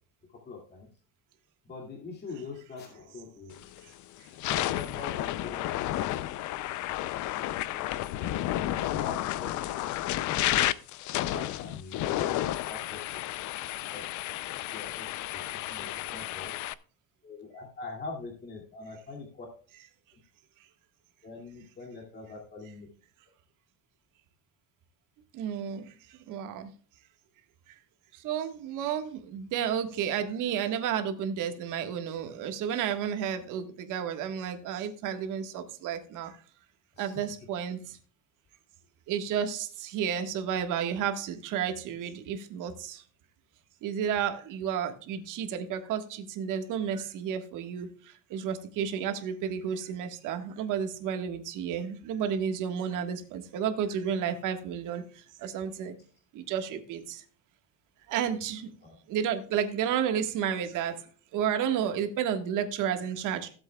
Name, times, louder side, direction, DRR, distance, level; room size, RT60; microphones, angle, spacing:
voice 1, 0.3-0.9 1.6-3.6 4.5-5.7 7.4-7.8 8.1-8.4 8.6-9.7 10.5-10.7 11.0-12.3 12.7-13.0 13.9-14.0 14.7-15.1 15.3-15.4 15.7-16.5 17.2-19.5 21.2-22.9 36.9-37.4 41.3-41.4 58.8-59.0 60.5-60.6, left 3 dB, 30° left, 0 dB, 2.5 m, -43 dB
sound 1, 3.6-3.8 4.3-16.7, left 14 dB, 60° left, 0.6 m, -31 dB
voice 2, 25.4-25.8 26.3-26.7 28.2-36.3 37.0-37.8 39.1-43.0 43.8-47.9 48.3-55.0 55.4-55.9 56.3-57.2 58.1-58.7 59.1-60.9 61.3-63.6, right 8 dB, 70° right, 6 dB, 1.6 m, -31 dB
16.5 x 7.9 x 2.3 m, 0.42 s
cardioid pair, 155°, 33 cm